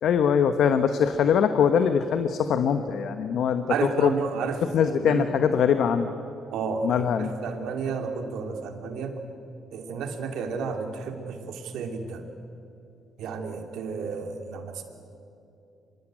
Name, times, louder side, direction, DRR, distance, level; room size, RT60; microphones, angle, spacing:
voice 1, 0.0-3.6 4.0-4.1 4.7-6.1 6.8-7.3, left 7 dB, 70° left, 9 dB, 1.1 m, -22 dB
voice 2, 3.7-5.4 6.5-9.2 9.7-12.3 13.2-14.8, right 5 dB, 85° right, 5 dB, 2.7 m, -32 dB
25.5 x 21.5 x 9.0 m, 2.8 s
cardioid pair, 90°, 0 cm